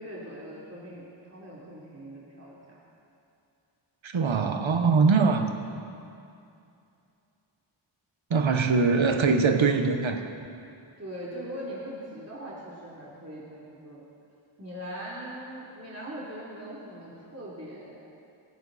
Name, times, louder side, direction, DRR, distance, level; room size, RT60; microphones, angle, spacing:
voice 1, 0.0-2.8 5.0-5.5 11.0-14.0 14.6-18.1, equal, 30° right, -7 dB, 3.4 m, -41 dB
voice 2, 4.0-5.5 8.3-10.2, right 4 dB, 70° right, 6 dB, 1.2 m, -22 dB
17.5 x 16.0 x 4.2 m, 2.6 s
wide cardioid pair, 75°, 49 cm